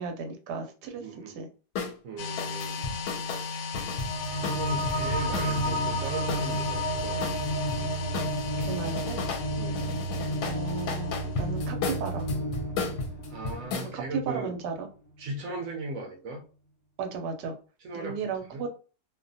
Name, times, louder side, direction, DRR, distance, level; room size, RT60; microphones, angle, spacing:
voice 1, 0.0-1.5 2.8-2.9 4.8-5.1 8.6-9.2 10.4-12.3 13.9-14.9 17.0-17.5 17.9-18.7, right 5 dB, 90° right, 5 dB, 1.2 m, -35 dB
voice 2, 1.0-1.4 2.0-2.8 3.2-3.8 4.5-7.2 9.6-9.9 13.3-14.5 15.2-16.4 17.8-18.6, right 2 dB, 65° right, 3 dB, 0.9 m, -38 dB
sound 1, 1.8-2.0 2.4-5.7 6.3-7.8 8.1-9.5 9.7-13.9, left 4 dB, 85° left, 1.2 m, -34 dB
sound 2, 2.2-11.5, left 5 dB, 70° left, 0.8 m, -37 dB
sound 3, 3.9-14.8, right 1 dB, 40° left, 0.7 m, -32 dB
2.6 x 2.1 x 2.6 m, 0.36 s
omnidirectional pair, 1.7 m